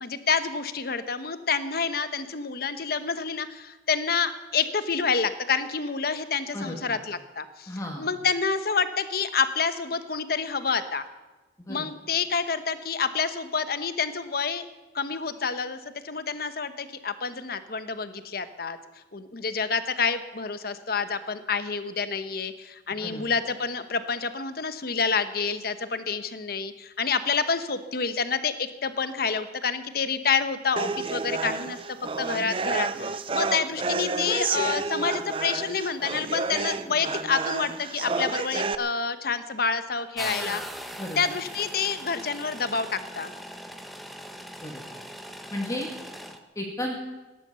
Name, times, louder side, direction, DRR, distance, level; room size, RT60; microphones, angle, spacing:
voice 1, 0.0-11.1 11.7-14.7 14.9-18.8 19.1-40.6 41.2-43.3, left 5 dB, 55° left, 11 dB, 1.0 m, -28 dB
voice 2, 6.5-7.0 7.7-8.1 11.7-11.9 23.0-23.2 41.0-41.2 44.6-44.8 45.5-45.9 46.6-46.9, left 1 dB, 15° left, 0 dB, 2.3 m, -33 dB
sound 1, 30.8-38.7, right 4 dB, 30° right, 0.6 m, -30 dB
sound 2, 40.2-46.4, equal, ahead, 1.1 m, -40 dB
18.0 x 10.5 x 6.9 m, 1.2 s
head